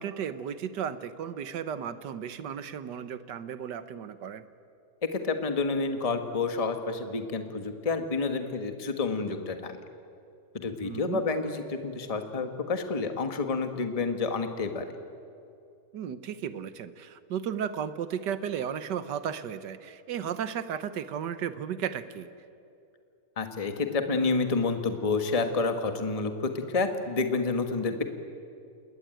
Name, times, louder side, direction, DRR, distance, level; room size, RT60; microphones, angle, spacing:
voice 1, 0.0-4.4 10.8-11.2 15.9-22.3, right 8 dB, 60° right, 13 dB, 1.5 m, -34 dB
voice 2, 5.1-9.8 10.5-14.8 23.4-28.0, left 4 dB, 20° left, 7 dB, 1.3 m, -29 dB
28.0 x 20.5 x 9.1 m, 2.5 s
omnidirectional pair, 2.3 m